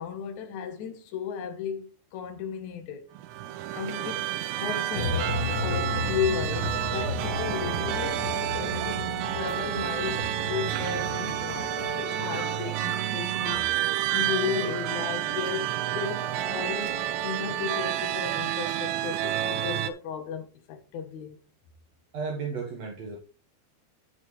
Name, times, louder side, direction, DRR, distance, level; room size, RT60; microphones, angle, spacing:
voice 1, 0.0-3.0 3.7-4.3 4.6-21.4, left 7 dB, 75° left, 1.7 m, -35 dB
sound 1, 3.2-19.9, right 12 dB, 90° right, 3.1 m, -30 dB
sound 2, 4.9-11.9, left 3 dB, 50° left, 3.8 m, -34 dB
voice 2, 22.1-23.2, right 5 dB, 60° right, 1.8 m, -33 dB
11.0 x 7.6 x 3.2 m
omnidirectional pair, 5.1 m